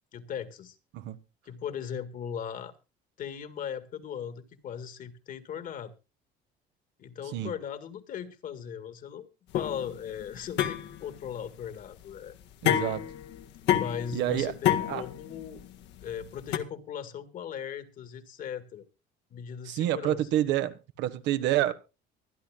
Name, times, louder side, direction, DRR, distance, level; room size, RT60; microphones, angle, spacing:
voice 1, 0.1-0.8 1.5-2.7 3.2-5.9 7.0-9.3 9.5-12.3 13.7-15.6 16.0-18.9 19.3-20.2, left 8 dB, 45° left, 1.9 m, -38 dB
sound 1, 9.5-16.6, left 11 dB, 70° left, 1.6 m, -30 dB
voice 2, 12.6-13.0 14.1-14.5 14.9-15.0 19.6-21.7, right 13 dB, 70° right, 1.4 m, -28 dB
24.5 x 10.5 x 2.3 m
cardioid pair, 155°, 19 cm